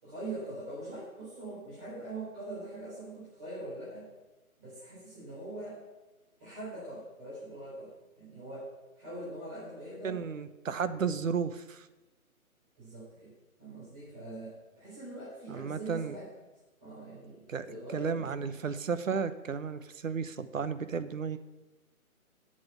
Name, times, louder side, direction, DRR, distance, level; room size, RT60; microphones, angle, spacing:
voice 1, 0.0-4.1 4.6-5.8 6.4-8.7 9.0-10.2 12.8-13.3 13.6-16.3 16.8-18.5, right 2 dB, 20° right, -10 dB, 4.0 m, -43 dB
voice 2, 10.0-11.9 15.5-16.2 17.5-17.7 17.9-21.4, right 6 dB, 60° right, 12 dB, 0.9 m, -33 dB
7.9 x 6.9 x 8.4 m, 1.1 s
hypercardioid pair, 170°, 43 cm